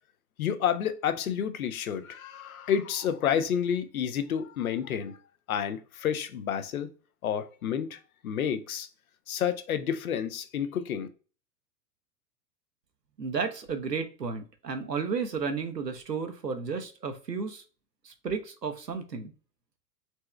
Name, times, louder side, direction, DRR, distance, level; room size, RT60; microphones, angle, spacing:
voice 1, 0.4-5.2 5.5-6.9 7.2-8.9 9.3-11.1, left 8 dB, 60° left, 0.7 m, -30 dB
voice 2, 13.2-17.6 18.0-19.3, right 5 dB, 85° right, 0.8 m, -33 dB
4.4 x 3.2 x 3.1 m
figure-of-eight pair, 100°, 48 cm